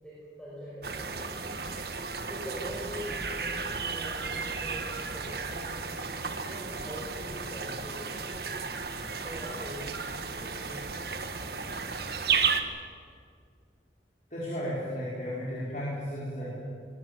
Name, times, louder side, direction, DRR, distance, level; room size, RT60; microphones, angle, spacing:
voice 1, 0.0-1.6 2.3-8.7 9.2-10.1 10.4-10.9 15.4-15.5 16.3-16.5, equal, 5° left, -8 dB, 6.0 m, -43 dB
sound 1, 0.8-12.6, right 5 dB, 60° right, 1.6 m, -33 dB
voice 2, 14.3-16.5, equal, 45° left, -7 dB, 5.2 m, -34 dB
22.0 x 19.5 x 8.3 m, 2.1 s
head